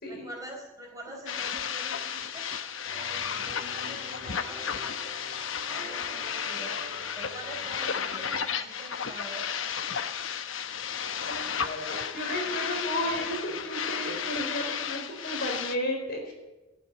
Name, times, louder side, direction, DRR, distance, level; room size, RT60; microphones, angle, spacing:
voice 1, 0.0-2.5 3.1-4.7 5.6-6.9 7.1-9.5, right 1 dB, 15° right, -1 dB, 4.4 m, -45 dB
sound 1, 1.3-15.8, left 7 dB, 70° left, 0.9 m, -33 dB
sound 2, 2.8-8.4, right 1 dB, 30° left, 7.0 m, -47 dB
voice 2, 11.2-16.3, equal, 55° left, 2 dB, 4.4 m, -33 dB
15.0 x 8.2 x 9.8 m, 1.1 s
head